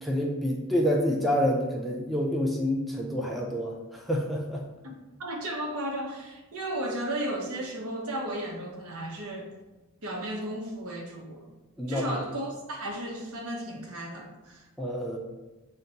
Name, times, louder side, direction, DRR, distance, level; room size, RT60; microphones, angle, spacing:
voice 1, 0.0-4.7 11.8-12.2 14.8-15.2, equal, ahead, -2 dB, 0.4 m, -28 dB
voice 2, 4.8-9.5 10.0-11.5 11.9-14.7, right 1 dB, 80° right, 1 dB, 0.8 m, -34 dB
6.4 x 2.1 x 2.8 m, 1.1 s
head